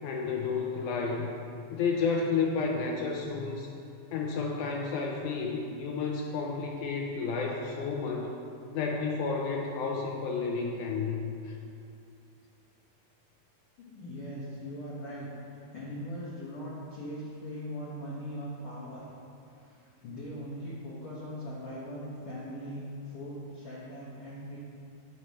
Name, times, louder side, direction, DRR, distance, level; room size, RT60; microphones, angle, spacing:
voice 1, 0.0-1.3 1.7-3.7 4.1-8.3 8.7-11.6, left 4 dB, 80° left, 0 dB, 1.9 m, -31 dB
voice 2, 13.8-15.3 15.7-19.0 19.5-24.6, equal, 60° left, -7 dB, 1.5 m, -40 dB
9.1 x 8.3 x 3.1 m, 2.5 s
omnidirectional pair, 3.8 m